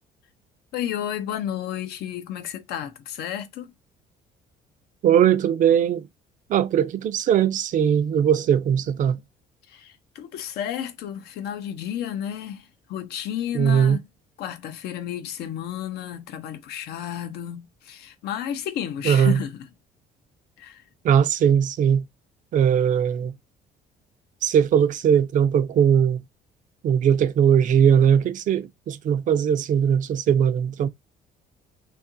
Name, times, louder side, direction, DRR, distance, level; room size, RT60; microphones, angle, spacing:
voice 1, 0.7-3.7 9.7-14.0 14.4-19.7 20.6-20.8, left 10 dB, 75° left, 0.5 m, -32 dB
voice 2, 5.0-6.0 6.5-9.2 13.5-14.0 19.0-19.4 21.0-22.1 22.5-23.3 24.4-26.2 26.8-30.9, right 8 dB, 50° right, 0.4 m, -20 dB
2.8 x 2.4 x 2.6 m
cardioid pair, 110°, 17 cm